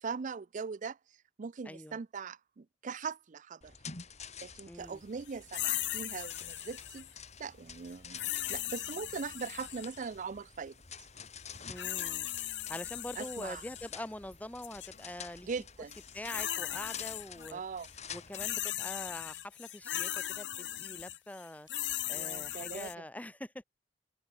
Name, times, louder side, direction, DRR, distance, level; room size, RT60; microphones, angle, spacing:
voice 1, 0.0-1.0 1.4-3.7 4.4-7.1 7.4-10.8 13.2-13.6 15.4-15.9 17.5-17.9 22.1-23.0, right 5 dB, 45° right, 0.4 m, -41 dB
voice 2, 1.6-2.0 4.7-5.0 11.7-12.3 12.7-15.5 16.1-17.6 18.1-21.7 22.1-23.6, left 1 dB, 10° left, 1.2 m, -44 dB
sound 1, 3.6-18.6, left 6 dB, 40° left, 3.9 m, -50 dB
sound 2, 5.5-7.1 8.2-10.0 11.5-13.9 14.6-14.9 15.9-17.5 17.8-22.9, left 13 dB, 75° left, 1.3 m, -38 dB
head